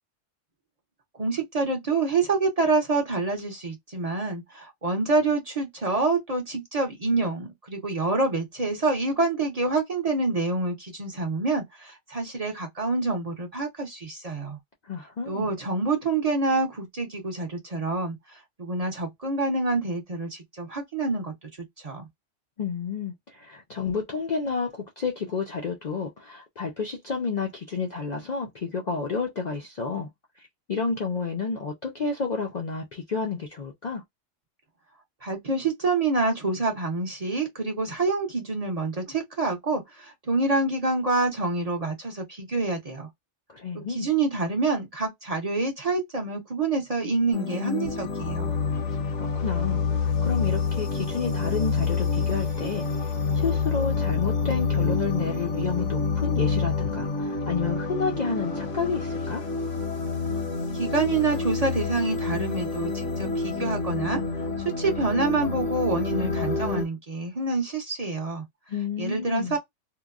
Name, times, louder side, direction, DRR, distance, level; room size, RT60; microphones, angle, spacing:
voice 1, 1.1-14.6 15.3-21.3 21.8-22.0 35.2-43.1 43.7-48.5 60.7-64.5 64.8-68.5 69.0-69.6, right 3 dB, 35° right, 0.7 m, -27 dB
voice 2, 14.8-15.5 22.6-30.1 30.4-34.0 43.5-44.1 49.1-59.4 68.7-69.6, left 5 dB, 50° left, 0.5 m, -30 dB
sound 1, 47.3-66.9, left 4 dB, 80° left, 1.2 m, -28 dB
2.8 x 2.2 x 2.4 m
omnidirectional pair, 1.3 m